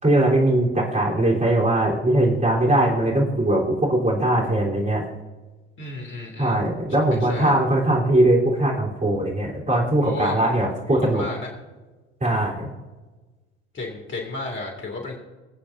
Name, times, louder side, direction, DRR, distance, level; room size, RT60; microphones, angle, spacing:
voice 1, 0.0-5.0 6.4-11.2 12.2-12.7, right 1 dB, 20° right, -4 dB, 3.7 m, -20 dB
voice 2, 5.8-6.6 7.1-7.6 10.0-10.6 10.9-11.5 13.7-15.2, left 3 dB, 35° left, 1 dB, 2.7 m, -32 dB
25.0 x 8.7 x 2.7 m, 1.2 s
figure-of-eight pair, 60°, 34 cm